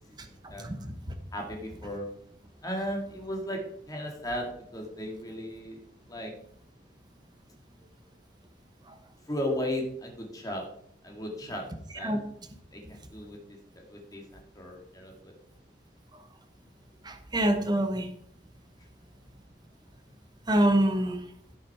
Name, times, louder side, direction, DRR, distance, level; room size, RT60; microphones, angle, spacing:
voice 1, 0.6-0.9 12.0-12.2 17.0-18.1 20.5-21.2, right 1 dB, 25° right, 6 dB, 1.2 m, -25 dB
voice 2, 1.3-2.1 2.6-3.6 3.9-5.8 6.1-6.3 9.3-10.6 11.0-11.6 11.9-12.1 12.7-14.2 14.5-15.3, left 1 dB, 20° left, 1 dB, 2.2 m, -35 dB
16.0 x 6.2 x 4.8 m, 0.71 s
head